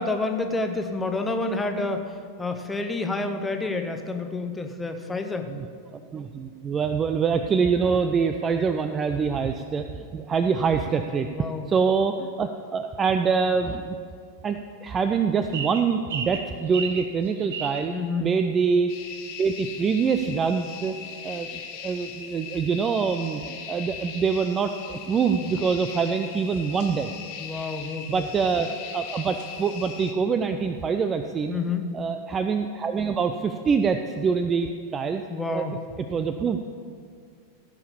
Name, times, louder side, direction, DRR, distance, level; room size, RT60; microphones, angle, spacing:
voice 1, 0.0-5.5 11.3-11.7 17.9-18.3 27.4-28.3 31.5-32.0 35.3-35.7, left 3 dB, 10° left, 5 dB, 1.0 m, -29 dB
voice 2, 5.9-11.3 11.7-14.0 14.4-17.9 18.2-18.9 19.4-20.9 21.2-21.5 21.8-27.1 28.1-31.6 31.9-35.2 35.5-35.7 36.0-36.6, right 5 dB, 20° right, 8 dB, 0.5 m, -25 dB
sound 1, 15.5-17.9, right 6 dB, 60° right, 1.0 m, -33 dB
sound 2, 18.9-30.1, left 7 dB, 45° left, 1.3 m, -39 dB
15.5 x 5.7 x 7.0 m, 2.2 s
figure-of-eight pair, 90°, 0 cm